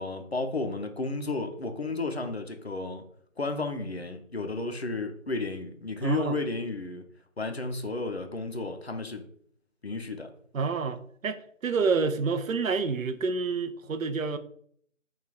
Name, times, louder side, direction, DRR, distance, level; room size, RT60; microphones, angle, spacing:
voice 1, 0.0-3.0 3.4-7.0 7.4-9.2 9.8-10.3, left 3 dB, 55° left, 0.5 m, -33 dB
voice 2, 6.0-6.4 10.5-14.4, right 4 dB, 90° right, 0.5 m, -28 dB
3.2 x 2.3 x 3.7 m
figure-of-eight pair, 170°, 39 cm